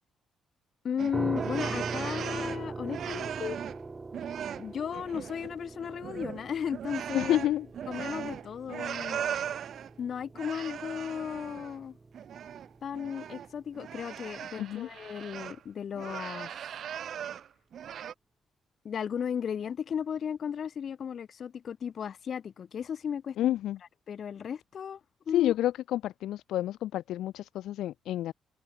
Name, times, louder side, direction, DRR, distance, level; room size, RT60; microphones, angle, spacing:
voice 1, 0.8-3.6 4.6-7.4 7.9-9.2 10.0-12.0 12.8-16.8 18.8-23.5 24.1-25.0 25.3-25.5, left 8 dB, 55° left, 7.4 m, -35 dB
sound 1, 1.0-3.8 4.1-5.5 5.8-9.9 10.3-11.8 12.1-15.6 15.9-17.5 17.7-18.1, right 9 dB, 65° right, 1.9 m, -38 dB
sound 2, 1.1-14.0, right 3 dB, 25° right, 2.1 m, -42 dB
voice 2, 7.1-7.7 14.6-14.9 23.4-23.8 25.3-28.3, left 13 dB, 80° left, 2.0 m, -29 dB
cardioid pair, 90°, 0 cm